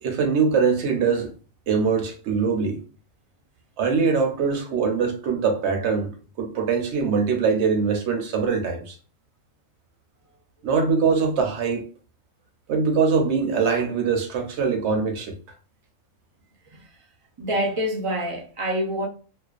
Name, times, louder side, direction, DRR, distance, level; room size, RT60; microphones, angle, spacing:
voice 1, 0.0-1.3 1.7-2.8 3.8-6.1 6.4-9.0 10.6-11.8 12.7-15.3, right 5 dB, 65° right, 0.8 m, -22 dB
voice 2, 17.4-19.1, equal, 40° right, 0.5 m, -26 dB
2.4 x 2.2 x 2.4 m
omnidirectional pair, 1.3 m